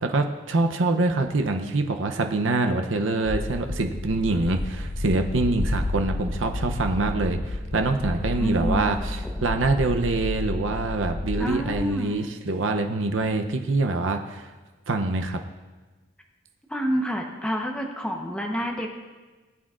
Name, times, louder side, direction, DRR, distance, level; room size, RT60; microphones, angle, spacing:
voice 1, 0.0-14.5 14.9-15.4, right 2 dB, 90° right, 5 dB, 0.7 m, -25 dB
sound 1, 3.2-11.9, left 2 dB, 30° left, 0.5 m, -31 dB
voice 2, 8.4-9.4 11.4-12.2 16.7-18.9, equal, 5° left, 0 dB, 1.0 m, -28 dB
18.5 x 8.7 x 2.5 m, 1.3 s
head